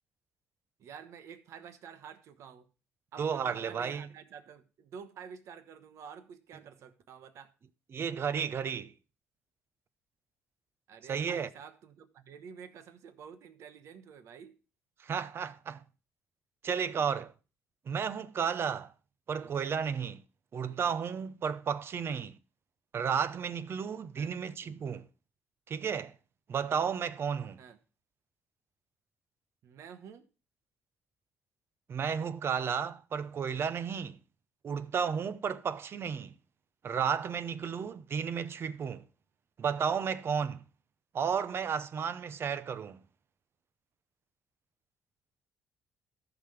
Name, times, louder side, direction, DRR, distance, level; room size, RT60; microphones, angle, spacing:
voice 1, 0.8-2.7 3.1-7.5 10.9-14.6 19.3-19.5 20.7-20.9 22.0-22.2 24.2-24.4 27.6-27.8 29.6-30.3 37.7-37.9, right 7 dB, 70° right, 1.1 m, -49 dB
voice 2, 3.2-4.1 7.9-8.9 11.1-11.5 15.0-15.8 16.6-17.3 17.9-18.9 19.3-20.2 20.5-22.4 22.9-25.1 25.7-26.1 26.5-27.6 31.9-34.2 34.6-36.3 36.8-39.0 39.6-40.6 41.1-43.0, right 7 dB, 50° right, 0.8 m, -33 dB
14.0 x 6.0 x 3.3 m
supercardioid pair, 75°, 5 cm